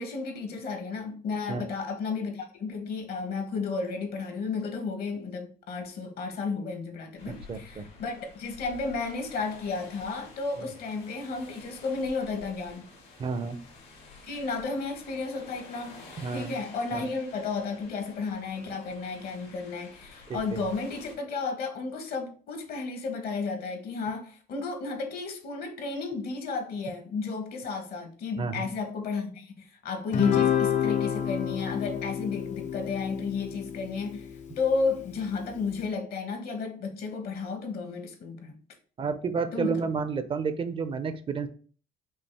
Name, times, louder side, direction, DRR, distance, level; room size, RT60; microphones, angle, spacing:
voice 1, 0.0-12.8 14.3-16.0 16.3-38.6 39.5-39.8, left 4 dB, 65° left, 1.2 m, -33 dB
sound 1, 7.2-21.1, left 3 dB, 85° left, 1.8 m, -50 dB
voice 2, 7.3-7.9 10.6-10.7 13.2-13.6 16.2-16.5 16.9-17.1 20.3-20.7 28.4-28.7 39.0-41.5, right 5 dB, 30° right, 0.5 m, -31 dB
Guitar, 30.1-34.7, left 9 dB, 45° left, 0.5 m, -29 dB
5.4 x 2.5 x 3.3 m
cardioid pair, 110°, 17 cm